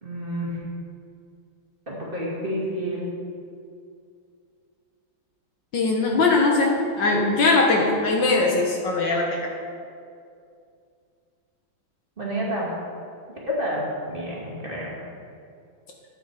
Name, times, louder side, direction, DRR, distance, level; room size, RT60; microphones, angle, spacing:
voice 1, 0.0-0.6 1.9-3.1 12.2-12.7 13.5-15.0, equal, 25° right, -5 dB, 2.4 m, -29 dB
voice 2, 5.7-9.5, left 3 dB, 60° left, 0 dB, 1.7 m, -21 dB
11.5 x 8.6 x 4.9 m, 2.4 s
omnidirectional pair, 2.3 m